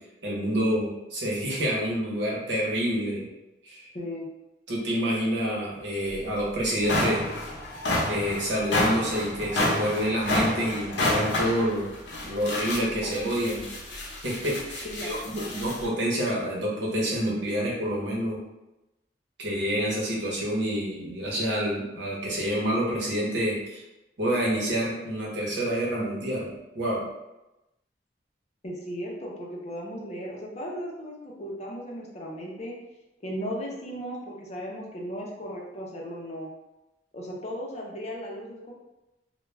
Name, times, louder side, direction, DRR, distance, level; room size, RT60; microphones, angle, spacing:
voice 1, 0.2-3.3 3.6-3.9 4.7-7.2 8.0-11.9 12.3-13.7 14.2-18.4 19.4-23.8 24.2-27.1, equal, 85° right, -4 dB, 0.8 m, -28 dB
voice 2, 3.9-4.3 13.0-13.1 14.8-15.6 28.6-32.7 33.2-36.5 37.1-38.7, equal, 40° left, -2 dB, 0.5 m, -36 dB
sound 1, 6.1-6.2 6.6-15.9, left 1 dB, 75° left, 0.7 m, -29 dB
2.2 x 2.1 x 3.1 m, 0.96 s
head